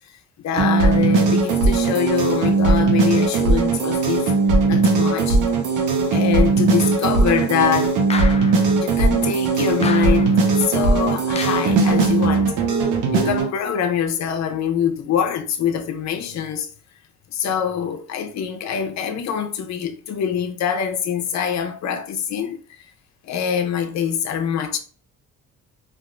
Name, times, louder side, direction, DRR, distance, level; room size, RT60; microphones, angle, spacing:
voice 1, 0.4-5.4 6.1-8.0 8.8-12.5 13.1-16.7 17.3-22.6 23.2-24.8, left 8 dB, 65° left, 0.6 m, -24 dB
sound 1, 0.6-13.5, right 3 dB, 85° right, 0.8 m, -18 dB
sound 2, 8.1-8.7 9.8-10.5 11.4-11.9, left 5 dB, 20° left, 0.3 m, -31 dB
3.4 x 2.5 x 2.4 m
cardioid pair, 90°, 30 cm